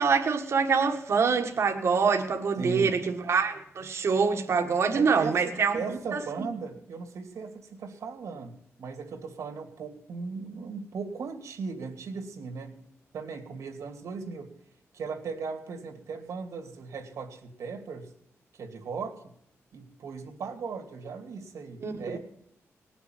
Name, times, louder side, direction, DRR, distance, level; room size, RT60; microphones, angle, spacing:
voice 1, 0.0-6.2 21.8-22.2, right 5 dB, 60° right, 1.6 m, -25 dB
voice 2, 2.6-3.0 4.9-12.8 13.1-14.5 14.9-18.1 18.5-19.2 19.7-22.2, right 5 dB, 85° right, 2.7 m, -37 dB
19.0 x 7.1 x 9.1 m
wide cardioid pair, 125°, 5 cm